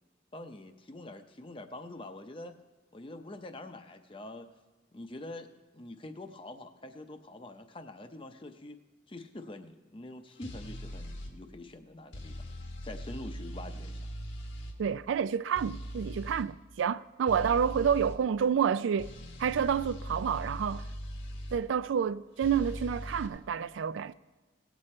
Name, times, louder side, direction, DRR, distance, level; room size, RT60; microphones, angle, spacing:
voice 1, 0.3-2.6 2.9-4.5 4.9-8.8 9.1-12.5 12.8-14.1, left 2 dB, 25° left, 0.6 m, -45 dB
sound 1, 10.4-11.3 12.1-14.8 15.6-16.5 17.3-18.2 19.0-21.6 22.4-23.3, equal, 75° left, 1.4 m, -40 dB
voice 2, 14.8-19.1 19.4-20.9 21.5-24.1, right 7 dB, 75° right, 0.3 m, -29 dB
17.5 x 8.2 x 4.3 m
head